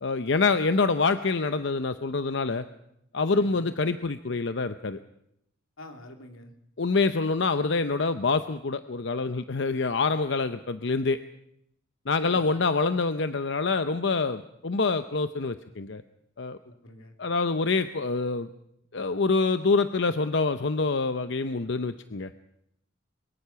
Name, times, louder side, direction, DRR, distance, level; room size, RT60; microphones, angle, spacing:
voice 1, 0.0-2.6 3.1-5.0 6.8-11.2 12.1-16.0 16.4-16.6 17.2-18.5 18.9-22.3, left 4 dB, 60° left, 10 dB, 0.7 m, -26 dB
voice 2, 3.3-3.7 5.8-6.5 12.2-12.5 16.6-17.1, left 1 dB, 85° left, 4 dB, 2.9 m, -46 dB
23.0 x 22.0 x 5.8 m, 0.76 s
head